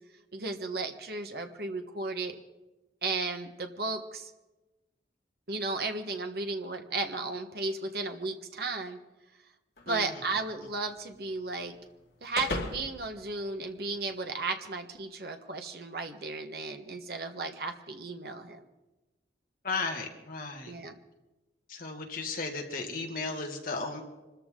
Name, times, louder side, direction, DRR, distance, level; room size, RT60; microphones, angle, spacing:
voice 1, 0.3-2.4 3.0-4.3 5.5-9.0 9.9-11.7 12.2-18.6 20.7-21.0, right 3 dB, 55° right, 5 dB, 1.4 m, -34 dB
sound 1, 9.8-14.2, left 2 dB, 65° left, 2.5 m, -42 dB
voice 2, 9.9-10.2 10.6-10.7 19.6-20.7 21.7-24.0, left 3 dB, 50° left, 2 dB, 2.1 m, -35 dB
25.5 x 14.0 x 3.8 m, 1.1 s
head